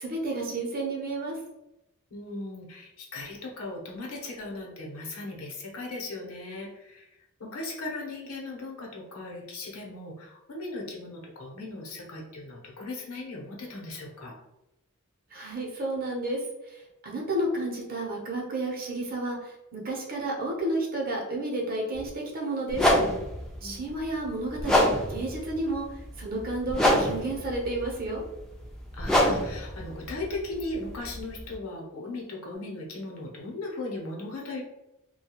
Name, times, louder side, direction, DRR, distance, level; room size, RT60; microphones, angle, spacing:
voice 1, 0.0-1.4 15.3-16.4 16.7-16.8 17.0-22.8 23.6-25.8 26.2-28.2, right 2 dB, 45° right, -2 dB, 0.7 m, -31 dB
voice 2, 2.1-7.1 7.4-14.3 23.6-23.9 28.9-34.6, left 2 dB, 80° left, -2 dB, 0.8 m, -38 dB
sound 1, 21.9-22.1 22.7-31.5, left 1 dB, 5° left, 0.3 m, -27 dB
2.4 x 2.2 x 2.9 m, 0.92 s
head